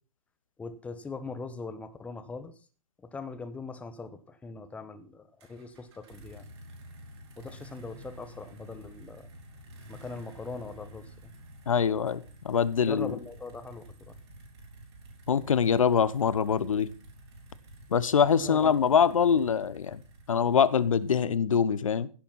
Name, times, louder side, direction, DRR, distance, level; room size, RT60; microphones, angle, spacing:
voice 1, 0.6-2.5 3.0-6.4 7.4-9.3 9.9-11.3 12.8-13.8 18.4-18.7, left 4 dB, 5° left, 10 dB, 1.2 m, -41 dB
sound 1, 5.4-21.4, right 1 dB, 45° right, 5.3 m, -50 dB
voice 2, 11.7-13.1 15.3-16.9 17.9-20.0 20.3-22.1, left 7 dB, 65° left, 16 dB, 1.1 m, -24 dB
16.0 x 6.9 x 5.8 m, 0.38 s
figure-of-eight pair, 130°, 19 cm